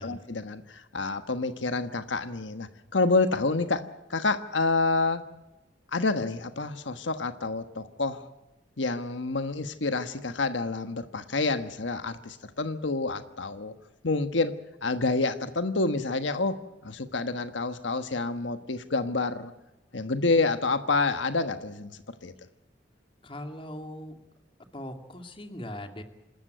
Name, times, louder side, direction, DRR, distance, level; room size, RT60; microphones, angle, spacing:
voice 1, 0.0-3.8 4.1-5.2 5.9-8.3 8.8-13.7 14.0-14.5 14.8-19.5 19.9-21.9 22.2-22.3, left 3 dB, 85° left, 10 dB, 1.3 m, -28 dB
voice 2, 23.2-24.2 24.7-26.0, left 1 dB, 30° left, 6 dB, 2.4 m, -40 dB
27.5 x 13.5 x 9.2 m, 0.97 s
head